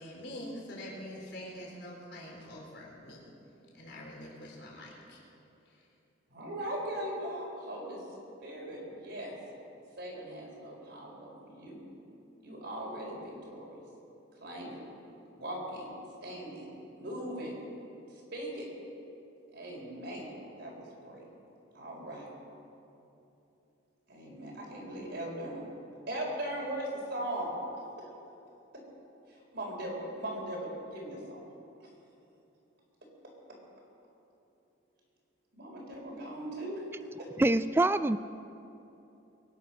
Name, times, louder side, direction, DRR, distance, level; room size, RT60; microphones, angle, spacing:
voice 1, 0.0-3.2 3.7-5.2, left 1 dB, 60° left, -3 dB, 4.2 m, -45 dB
voice 2, 6.3-8.0 8.4-9.4 10.0-11.8 12.4-13.8 14.4-14.8 15.4-15.9 16.2-17.6 18.1-18.7 19.5-20.3 20.5-21.2 21.7-22.3 24.1-25.7 26.1-27.5 28.0-28.1 28.7-28.8 29.3-31.5 35.5-36.8, right 1 dB, 60° right, -2 dB, 4.5 m, -39 dB
voice 3, 37.4-38.2, right 2 dB, 10° right, 13 dB, 0.3 m, -25 dB
23.5 x 10.5 x 5.8 m, 2.9 s
head